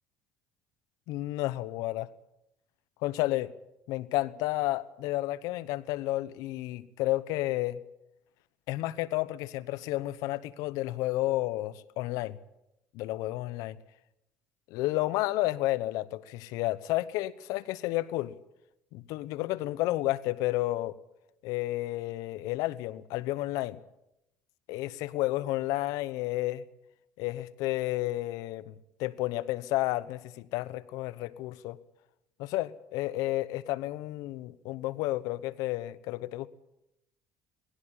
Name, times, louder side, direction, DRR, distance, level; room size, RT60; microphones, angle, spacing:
voice 1, 1.1-2.1 3.0-3.5 3.9-7.8 8.7-12.4 12.9-13.8 14.7-18.3 18.9-21.0 21.4-23.8 24.7-26.6 27.2-28.7 29.0-31.8 32.4-36.5, left 17 dB, 75° left, 1.0 m, -31 dB
20.0 x 16.5 x 8.7 m
supercardioid pair, 80°, 6 cm